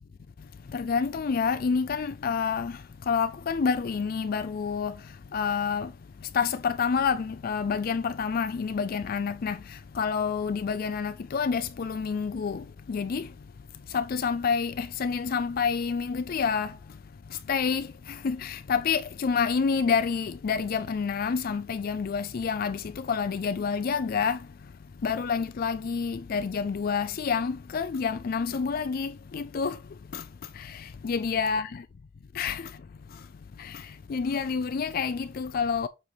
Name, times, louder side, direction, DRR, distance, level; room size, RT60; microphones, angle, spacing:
voice 1, 0.7-5.0 5.3-5.9 6.3-13.3 13.9-16.8 17.3-24.5 25.0-29.8 30.1-30.3 30.5-31.8 32.3-32.7 33.1-33.2 33.6-35.9, left 6 dB, 50° left, 0.4 m, -28 dB
7.2 x 3.2 x 5.6 m
head